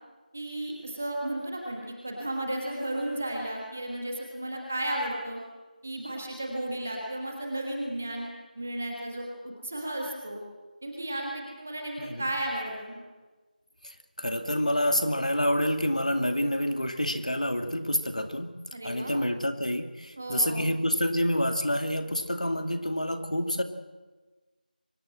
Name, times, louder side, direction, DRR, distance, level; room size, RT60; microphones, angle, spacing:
voice 1, 0.3-5.4 5.8-8.3 8.5-10.4 10.8-13.0 18.7-19.2 20.2-20.7, right 1 dB, 10° right, 0 dB, 1.4 m, -34 dB
voice 2, 13.8-18.6 18.8-23.6, equal, 50° left, 7 dB, 2.3 m, -28 dB
24.0 x 18.5 x 7.7 m, 1.3 s
figure-of-eight pair, 175°, 5 cm